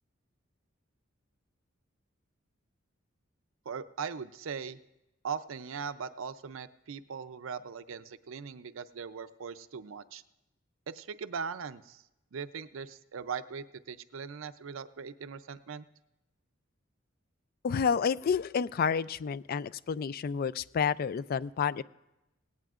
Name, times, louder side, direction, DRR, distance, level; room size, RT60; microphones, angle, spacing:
voice 1, 3.7-4.8 5.2-10.2 10.9-12.0 12.3-15.8, right 6 dB, 80° right, 13 dB, 0.5 m, -40 dB
voice 2, 17.6-21.8, left 6 dB, 50° left, 18 dB, 0.3 m, -30 dB
18.5 x 17.0 x 2.5 m, 0.94 s
head